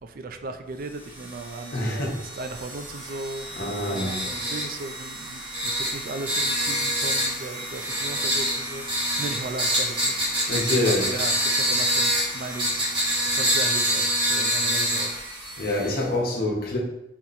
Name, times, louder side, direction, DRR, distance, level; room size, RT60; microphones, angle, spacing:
voice 1, 0.0-10.5 10.9-15.2, right 3 dB, 55° right, 7 dB, 0.4 m, -37 dB
sound 1, 1.1-16.0, equal, 30° right, 1.5 m, -27 dB
voice 2, 1.7-2.1 3.6-4.2 10.5-11.1 15.6-16.8, left 1 dB, 55° left, -2 dB, 1.1 m, -26 dB
4.2 x 2.9 x 4.0 m, 0.84 s
head